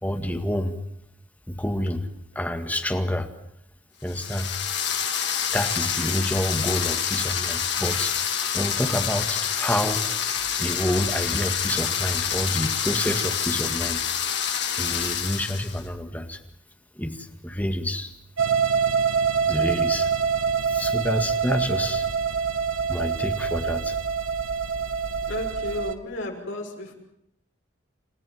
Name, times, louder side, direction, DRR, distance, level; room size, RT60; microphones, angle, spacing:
voice 1, 0.0-0.8 1.5-2.0 2.4-3.3 4.0-4.5 5.5-8.1 8.5-10.0 10.6-14.0 14.7-16.4 17.0-18.1 19.5-20.1 20.7-22.1 22.9-24.0, left 1 dB, 10° left, 5 dB, 1.9 m, -28 dB
sound 1, 4.1-15.8, left 8 dB, 55° left, 3.1 m, -27 dB
sound 2, 18.4-25.9, right 6 dB, 85° right, 1.5 m, -25 dB
voice 2, 25.2-26.9, left 1 dB, 70° left, 1 dB, 5.9 m, -33 dB
29.0 x 15.0 x 9.3 m, 0.77 s
head